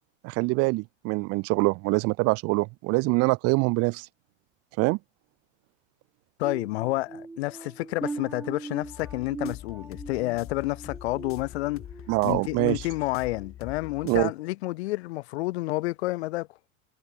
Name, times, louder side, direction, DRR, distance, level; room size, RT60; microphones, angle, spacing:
voice 1, 0.2-4.1 4.8-5.0 12.1-12.9 14.0-14.3, right 26 dB, 40° right, 0.7 m, -24 dB
voice 2, 6.4-11.9 12.2-16.5, left 20 dB, 55° left, 0.6 m, -29 dB
sound 1, 6.4-12.1 12.5-12.8 13.3-13.5, right 3 dB, 5° right, 0.3 m, -40 dB
sound 2, 8.8-14.3, left 11 dB, 35° left, 6.9 m, -44 dB
figure-of-eight pair, 90°, 40 cm